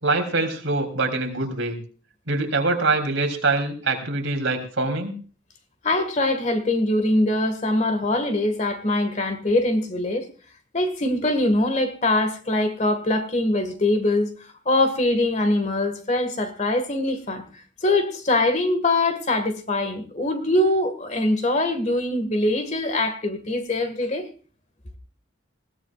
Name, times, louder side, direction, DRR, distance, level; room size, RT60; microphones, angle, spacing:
voice 1, 0.0-1.8 2.3-5.1, right 3 dB, 75° right, 3.2 m, -24 dB
voice 2, 5.8-10.3 10.7-14.3 14.7-17.4 17.8-24.3, left 2 dB, 35° left, 1.7 m, -23 dB
20.5 x 16.5 x 2.4 m
head